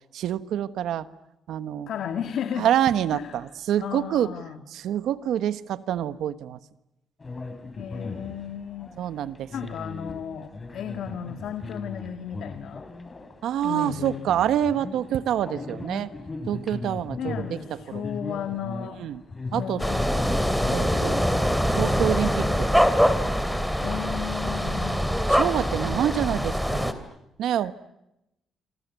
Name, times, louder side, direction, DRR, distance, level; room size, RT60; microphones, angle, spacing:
voice 1, 0.1-1.1 1.5-1.9 2.6-4.3 4.7-6.6 9.0-9.5 13.4-16.1 16.5-17.6 17.9-18.0 18.8-19.2 19.5-19.8 20.7-21.3 21.7-22.7 25.3-27.0 27.4-27.7, right 10 dB, 80° right, 13 dB, 1.2 m, -26 dB
voice 2, 1.9-2.7 3.1-3.4 3.8-4.6 7.8-9.0 9.5-12.8 13.6-14.4 17.2-19.0 19.5-20.4 23.8-25.0 27.6-27.7, left 9 dB, 70° left, 8 dB, 1.8 m, -34 dB
sound 1, 7.2-22.5, left 3 dB, 30° left, 3.8 m, -38 dB
sound 2, 19.8-26.9, equal, ahead, 2.8 m, -24 dB
27.5 x 26.5 x 8.2 m, 0.88 s
cardioid pair, 90°, 0 cm